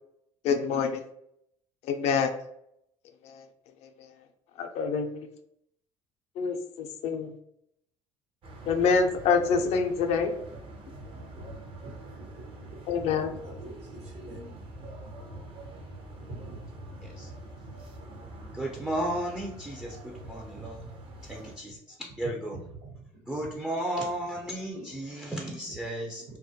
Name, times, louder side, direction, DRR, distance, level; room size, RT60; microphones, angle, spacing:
voice 1, 0.4-1.0 1.9-2.3 3.2-3.4 4.0-4.1 4.6-5.1 6.4-7.3 8.7-10.3 12.9-13.3, left 5 dB, 65° left, 5 dB, 0.4 m, -26 dB
sound 1, 8.4-21.6, right 1 dB, 50° right, 0.6 m, -45 dB
voice 2, 11.3-11.9 12.2-12.7 13.4-14.5 15.6-15.7 16.4-16.6 20.8-20.9 22.5-23.0 23.4-23.5 24.8-24.9 25.3-25.4, right 2 dB, 75° right, -1 dB, 0.9 m, -46 dB
voice 3, 18.5-20.9 21.2-22.6 23.3-26.2, right 1 dB, 5° right, -1 dB, 0.4 m, -34 dB
2.2 x 2.1 x 2.7 m, 0.75 s
supercardioid pair, 85°, 12 cm